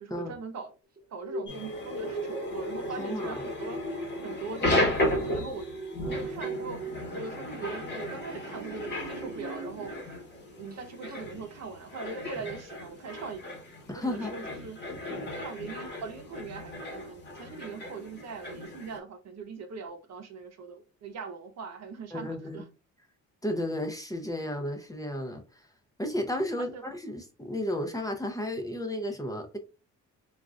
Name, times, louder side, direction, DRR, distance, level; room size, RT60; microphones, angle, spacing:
voice 1, 0.0-0.7 1.1-3.8 4.2-5.7 6.1-9.9 10.6-13.6 13.9-14.8 15.4-22.6 26.6-26.8, right 5 dB, 60° right, 0.8 m, -41 dB
sound 1, 1.0-10.2 10.5-10.8 11.1-11.2, right 3 dB, 30° right, 1.0 m, -42 dB
sound 2, 1.5-19.0, left 1 dB, 35° left, 1.1 m, -35 dB
voice 2, 3.0-3.4 13.9-14.4 22.1-22.6 23.4-25.7 26.0-29.6, left 1 dB, 10° left, 0.7 m, -33 dB
3.7 x 2.4 x 2.4 m
cardioid pair, 90°, 30 cm